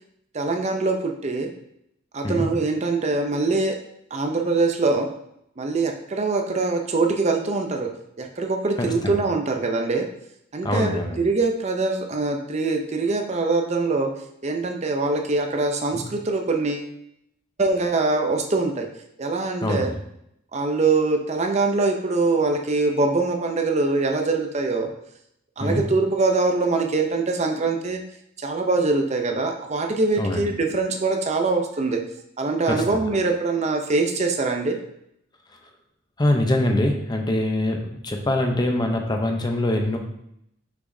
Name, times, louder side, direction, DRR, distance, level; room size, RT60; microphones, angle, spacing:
voice 1, 0.3-1.5 2.1-3.8 4.1-5.1 5.6-7.9 8.2-10.1 10.5-14.1 14.4-16.9 17.6-18.9 19.2-19.9 20.5-24.9 25.6-28.0 28.4-32.0 32.4-34.8, right 3 dB, 35° right, 4 dB, 0.5 m, -23 dB
voice 2, 8.8-9.1 10.6-11.2 15.9-16.0 19.6-20.0 25.6-25.8 30.2-30.5 32.7-33.0 36.2-40.0, left 1 dB, 20° left, 3 dB, 0.6 m, -24 dB
6.0 x 5.9 x 2.7 m, 0.76 s
head